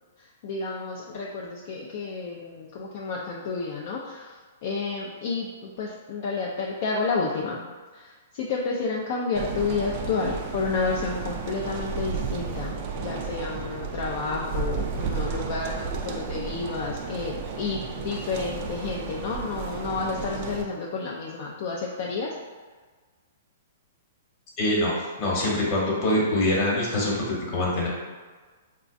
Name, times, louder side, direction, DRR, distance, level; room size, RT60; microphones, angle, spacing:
voice 1, 0.4-4.3 4.6-7.7 8.3-22.3, left 4 dB, 55° left, -3 dB, 0.4 m, -30 dB
sound 1, 9.3-20.6, right 5 dB, 45° right, 0.4 m, -33 dB
voice 2, 24.6-27.9, left 1 dB, 35° left, -4 dB, 1.0 m, -24 dB
3.9 x 2.3 x 2.5 m, 1.4 s
hypercardioid pair, 135°, 0 cm